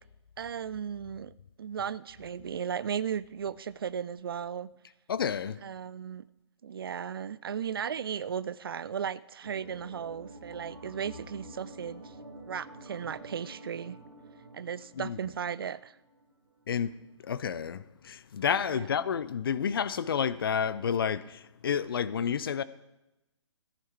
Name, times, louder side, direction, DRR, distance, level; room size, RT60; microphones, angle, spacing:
voice 1, 0.4-4.7 5.6-6.2 6.6-12.1 12.4-14.0 14.5-16.0 18.7-18.9, right 8 dB, 50° right, 0.4 m, -36 dB
voice 2, 5.1-5.6 15.0-15.2 16.7-17.0 17.2-22.6, left 7 dB, 50° left, 0.6 m, -30 dB
sound 1, 9.4-16.5 16.7-16.8, right 1 dB, 75° right, 2.9 m, -48 dB
14.5 x 10.0 x 4.7 m
figure-of-eight pair, 135°, 16 cm